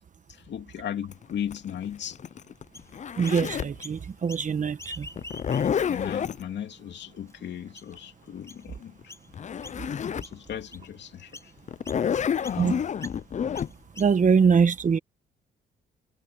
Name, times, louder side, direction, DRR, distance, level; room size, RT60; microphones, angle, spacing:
voice 1, 0.3-2.2 5.9-9.1 9.7-11.5 12.1-12.2 12.5-12.8, left 9 dB, 65° left, 2.7 m, -37 dB
Zipper (clothing), 1.1-3.8 5.2-6.4 9.0-9.1 9.3-10.3 10.8-10.9 11.7-13.7, left 8 dB, 40° left, 0.5 m, -29 dB
Chirp tweet, 2.7-3.4 3.8-4.5 4.7-5.9 6.5-6.6 7.3-7.4 7.7-8.0 8.5-8.7 9.1-9.3 9.6-10.0 10.2-10.9 11.3-11.5 11.8-12.0 12.4-12.6 13.0-13.2 13.5-14.3, left 2 dB, 15° left, 4.3 m, -45 dB
voice 2, 3.2-5.1 12.6-12.8 14.0-15.0, right 6 dB, 40° right, 1.3 m, -23 dB
cardioid pair, 85°, 19 cm